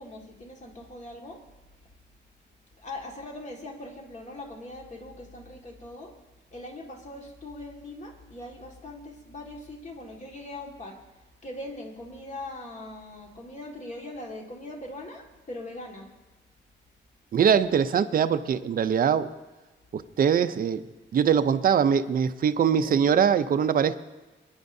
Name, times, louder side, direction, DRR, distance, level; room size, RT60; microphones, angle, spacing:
voice 1, 0.0-1.4 2.7-6.2 6.5-11.0 11.4-16.1 22.7-23.1, left 1 dB, 35° left, 1 dB, 1.8 m, -41 dB
voice 2, 17.3-19.3 19.9-20.8 21.1-23.9, right 7 dB, 45° right, 11 dB, 0.5 m, -22 dB
22.5 x 10.5 x 2.7 m, 1.2 s
wide cardioid pair, 170°, 20 cm